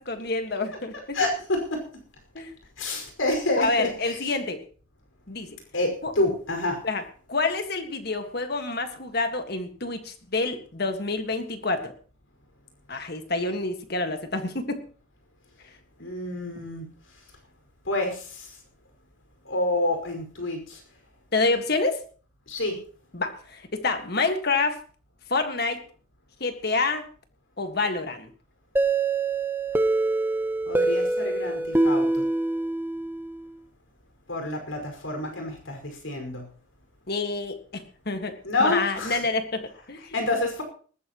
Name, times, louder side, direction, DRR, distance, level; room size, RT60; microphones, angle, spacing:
voice 1, 0.0-1.2 2.4-2.5 3.6-4.6 5.3-5.5 6.0-6.1 6.8-7.0 7.3-11.9 12.9-14.8 21.3-22.0 23.1-24.8 25.3-25.8 26.4-27.0 27.6-28.3 37.1-38.3 38.6-40.2, left 3 dB, 50° left, 7 dB, 1.8 m, -27 dB
voice 2, 1.1-1.8 2.8-4.2 5.7-6.8 16.0-16.8 17.9-18.5 19.5-20.8 22.5-22.8 30.7-32.2 34.3-36.4 38.4-39.2 40.1-40.6, left 2 dB, 80° left, 3 dB, 5.5 m, -28 dB
sound 1, 28.8-33.4, right 2 dB, 10° right, 1.0 m, -25 dB
20.0 x 14.0 x 3.1 m, 0.41 s
head